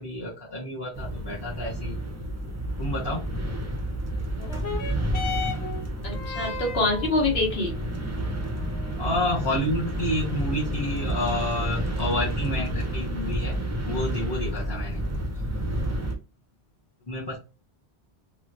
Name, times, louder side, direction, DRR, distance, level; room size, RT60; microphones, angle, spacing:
voice 1, 0.0-2.0 2.8-3.2 9.0-13.5 13.8-15.0 17.1-17.4, left 1 dB, 25° left, -6 dB, 0.7 m, -29 dB
sound 1, 0.9-16.2, right 1 dB, 25° right, 0.3 m, -30 dB
sound 2, 4.3-13.3 14.1-14.2, left 4 dB, 85° left, 1.1 m, -39 dB
voice 2, 6.0-7.7, left 2 dB, 70° left, 0 dB, 1.3 m, -25 dB
3.1 x 2.3 x 2.6 m, 0.30 s
omnidirectional pair, 1.1 m